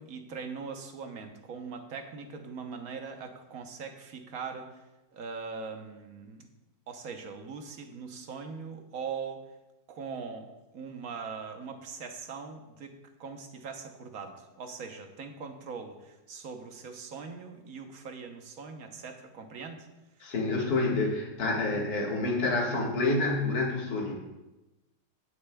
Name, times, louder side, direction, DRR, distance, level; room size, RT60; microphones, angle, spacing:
voice 1, 0.0-4.7 5.1-6.5 6.9-9.4 9.9-19.9, right 5 dB, 60° right, 5 dB, 1.2 m, -41 dB
voice 2, 20.2-24.1, left 2 dB, 60° left, -2 dB, 2.1 m, -28 dB
17.0 x 6.7 x 2.3 m, 1.0 s
omnidirectional pair, 1.9 m